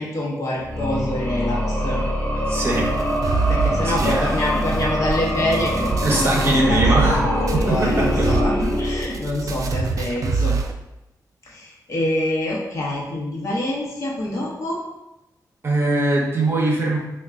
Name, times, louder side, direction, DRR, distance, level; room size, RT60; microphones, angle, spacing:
voice 1, 0.0-2.0 3.5-10.6 11.5-14.8, left 1 dB, 50° left, -4 dB, 0.9 m, -26 dB
Dark Breath Pad, 0.6-9.6, equal, 20° left, 1.3 m, -24 dB
voice 2, 2.5-2.9 3.5-4.3 6.0-7.2 7.5-8.3 15.6-17.0, right 2 dB, 35° right, -2 dB, 0.7 m, -21 dB
sound 1, 2.7-7.2 7.5-10.7, right 4 dB, 55° right, 0.3 m, -26 dB
3.4 x 2.3 x 3.6 m, 0.94 s
wide cardioid pair, 140°, 7 cm